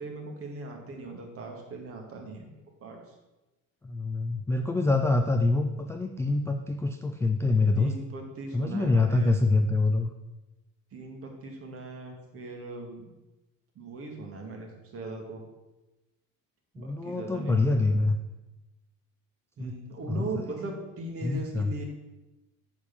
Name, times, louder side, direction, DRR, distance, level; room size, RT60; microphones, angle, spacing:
voice 1, 0.0-3.1 7.8-9.5 10.9-13.1 13.8-15.4 16.7-17.9 19.6-21.8, right 3 dB, 45° right, 1 dB, 2.1 m, -39 dB
voice 2, 3.8-7.9 8.5-10.1 16.8-18.2 19.6-19.7 20.1-20.5 21.2-21.7, left 3 dB, 10° left, 4 dB, 0.4 m, -25 dB
9.3 x 4.5 x 7.2 m, 1.0 s
cardioid pair, 145°, 33 cm